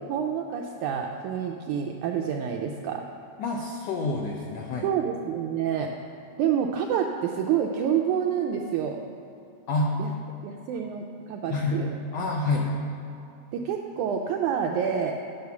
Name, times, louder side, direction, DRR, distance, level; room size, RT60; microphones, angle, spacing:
voice 1, 0.1-3.1 4.8-5.9 6.4-9.0 10.0-10.1 10.4-12.0 13.5-15.1, right 8 dB, 85° right, 2 dB, 1.7 m, -28 dB
voice 2, 3.4-4.9 9.7-9.9 11.5-11.8 12.1-12.7, left 3 dB, 80° left, -1 dB, 1.5 m, -27 dB
9.5 x 7.8 x 7.0 m, 2.6 s
omnidirectional pair, 4.1 m